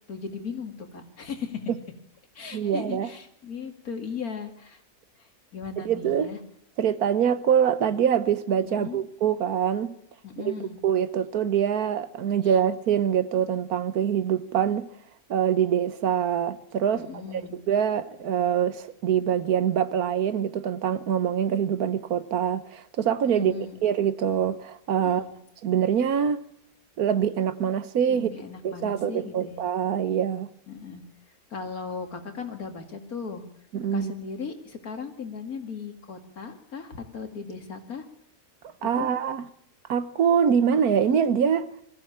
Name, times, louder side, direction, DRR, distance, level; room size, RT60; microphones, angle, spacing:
voice 1, 0.1-1.7 2.3-4.8 5.2-6.4 8.7-9.0 10.2-10.8 12.4-12.5 16.9-17.6 23.3-23.8 25.0-25.3 28.1-29.6 30.7-31.0 31.5-33.4 33.9-38.1 39.0-39.1, left 5 dB, 70° left, 2.8 m, -37 dB
voice 2, 2.5-3.1 5.8-6.3 6.8-9.9 10.4-14.9 15.3-17.1 17.5-25.2 25.6-26.4 27.0-28.3 28.6-30.5 33.7-34.1 38.8-39.5 39.9-41.7, right 8 dB, 75° right, 1.5 m, -24 dB
21.5 x 15.0 x 8.6 m
omnidirectional pair, 1.6 m